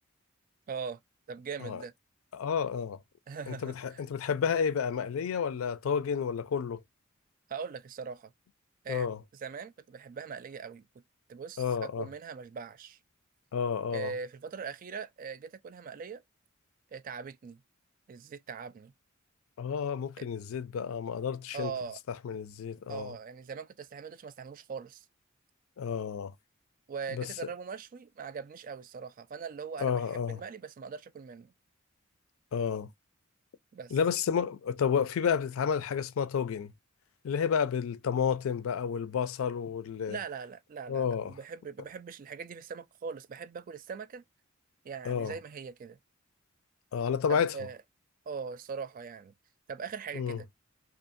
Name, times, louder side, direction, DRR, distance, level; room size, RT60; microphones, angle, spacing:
voice 1, 0.7-1.0 1.3-1.9 3.3-4.0 7.5-8.3 8.8-9.1 9.4-10.9 11.3-13.0 13.9-16.2 16.9-17.6 18.1-18.9 20.2-20.3 21.5-22.0 22.9-25.0 26.9-31.5 33.7-34.0 40.1-44.2 44.8-46.0 47.3-47.8 48.3-49.3 49.7-50.5, right 6 dB, 40° right, 0.3 m, -41 dB
voice 2, 2.3-3.0 3.5-6.8 8.9-9.2 11.6-12.1 13.5-14.1 19.6-21.7 22.1-23.1 25.8-26.3 27.1-27.3 29.8-30.4 32.5-32.9 33.9-36.7 37.2-40.2 40.9-41.3 45.0-45.4 46.9-47.5 50.1-50.4, left 7 dB, 90° left, 0.4 m, -30 dB
2.6 x 2.4 x 2.4 m
head